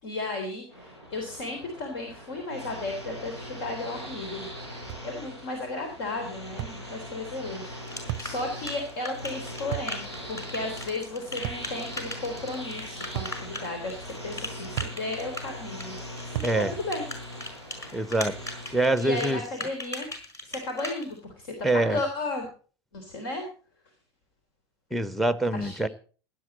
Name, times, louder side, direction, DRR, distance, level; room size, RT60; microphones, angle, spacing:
voice 1, 0.0-4.5 5.0-16.0 16.2-17.1 19.0-20.1 20.4-22.5 22.9-23.4 25.5-25.8, left 2 dB, 55° left, 3.4 m, -34 dB
sound 1, 0.7-19.5, equal, 80° left, 5.8 m, -41 dB
sound 2, 4.9-5.1 6.6-6.8 8.1-8.3 9.7-10.0 11.4-11.7 13.2-13.4 14.8-15.0 16.4-16.6, right 18 dB, 45° right, 0.6 m, -33 dB
sound 3, 7.9-21.0, left 1 dB, 20° left, 5.2 m, -38 dB
voice 2, 16.4-16.7 17.9-18.3 18.7-19.4 21.6-22.0 24.9-25.9, right 2 dB, ahead, 0.9 m, -25 dB
17.0 x 11.0 x 4.2 m
figure-of-eight pair, 80°, 14 cm